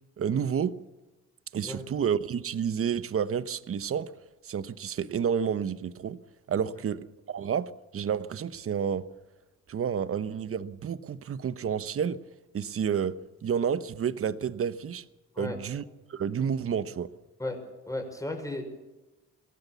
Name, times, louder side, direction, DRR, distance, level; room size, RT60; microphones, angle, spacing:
voice 1, 0.2-0.7 1.5-4.1 4.4-6.2 6.5-7.0 7.3-9.0 9.7-12.2 12.5-13.1 13.4-15.0 15.4-15.8 16.1-17.1, right 7 dB, 45° right, 14 dB, 1.1 m, -30 dB
voice 2, 17.9-18.6, left 1 dB, 10° left, 4 dB, 5.5 m, -34 dB
22.5 x 16.5 x 7.1 m, 1.1 s
cardioid pair, 90°, 30 cm